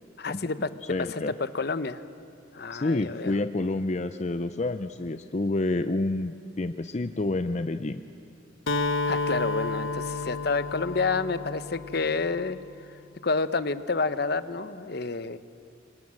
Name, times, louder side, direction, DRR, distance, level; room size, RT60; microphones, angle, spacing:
voice 1, 0.2-0.7 1.1-2.0 2.5-3.4 9.1-15.4, left 4 dB, 55° left, 13 dB, 0.9 m, -29 dB
voice 2, 0.9-1.3 2.7-8.0, left 2 dB, 35° left, 10 dB, 0.6 m, -28 dB
Acoustic guitar, 8.7-12.5, left 3 dB, 80° left, 0.9 m, -31 dB
27.5 x 24.0 x 7.7 m, 2.5 s
head